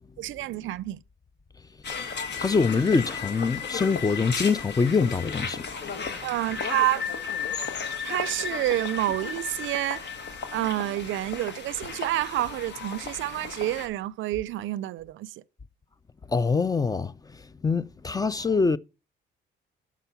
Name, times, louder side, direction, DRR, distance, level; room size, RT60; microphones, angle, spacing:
voice 1, 0.2-1.0 6.2-7.1 8.0-10.0 10.5-15.3, right 15 dB, 75° right, 0.4 m, -28 dB
sound 1, 1.8-13.9, left 6 dB, 60° left, 1.3 m, -34 dB
voice 2, 2.4-5.7 16.3-17.1 17.6-18.8, left 4 dB, 20° left, 0.3 m, -24 dB
6.1 x 5.6 x 6.8 m
cardioid pair, 90°, 20 cm